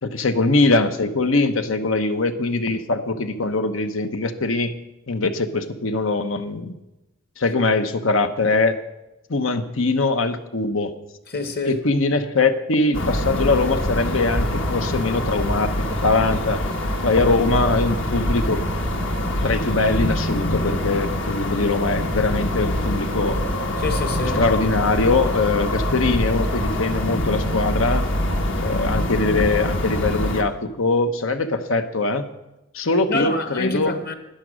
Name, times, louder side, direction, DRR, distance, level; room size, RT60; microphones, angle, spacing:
voice 1, 0.0-4.7 5.1-6.7 7.4-8.8 9.3-10.9 11.6-15.7 16.0-16.6 17.0-18.6 19.4-23.4 24.3-28.1 28.6-32.3 32.7-34.0, left 3 dB, 90° left, 1.0 m, -22 dB
voice 2, 11.3-11.8 23.8-24.4 33.1-34.1, left 2 dB, 50° left, 1.4 m, -26 dB
sound 1, 12.9-30.4, left 1 dB, 70° left, 1.6 m, -24 dB
11.5 x 10.5 x 6.2 m
head